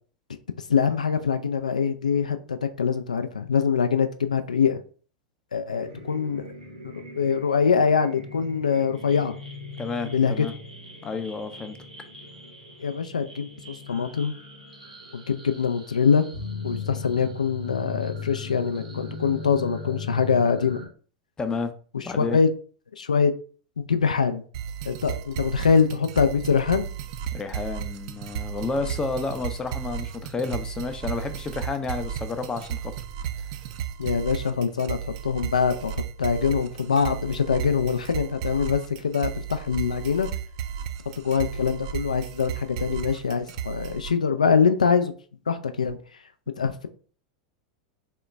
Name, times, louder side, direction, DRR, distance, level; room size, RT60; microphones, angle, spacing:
voice 1, 0.7-4.8 5.5-6.5 6.8-9.4 10.0-10.5 12.8-14.3 15.1-16.3 16.6-20.8 21.9-22.5 23.0-23.3 23.8-24.4 24.9-26.9 34.0-35.0 35.2-35.9 36.2-40.3 41.2-45.1 45.5-46.0 46.6-46.9, left 6 dB, 80° left, 0.3 m, -24 dB
sound 1, 5.7-20.9, left 4 dB, 85° right, 0.8 m, -39 dB
voice 2, 9.8-10.5 11.0-11.8 21.4-21.7 22.0-22.4 27.3-32.9, left 4 dB, 20° left, 0.5 m, -30 dB
sound 2, 24.5-44.1, right 9 dB, 55° right, 0.3 m, -34 dB
3.7 x 2.1 x 3.2 m
figure-of-eight pair, 90°, 4 cm